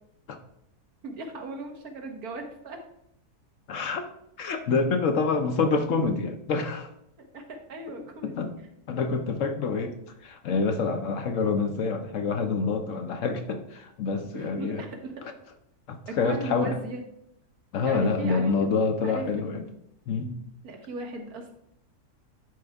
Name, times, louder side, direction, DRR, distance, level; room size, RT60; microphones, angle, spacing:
voice 1, 1.0-2.8 7.2-8.7 14.3-15.1 16.1-17.0 17.8-18.7 19.0-19.7 20.6-21.5, right 2 dB, 70° right, 3 dB, 1.6 m, -37 dB
voice 2, 3.7-4.1 4.4-6.9 8.2-8.5 8.9-9.9 10.2-14.8 15.9-16.8 17.7-19.6 20.1-20.4, left 4 dB, 65° left, 7 dB, 1.0 m, -27 dB
11.0 x 4.6 x 3.4 m, 0.76 s
omnidirectional pair, 1.6 m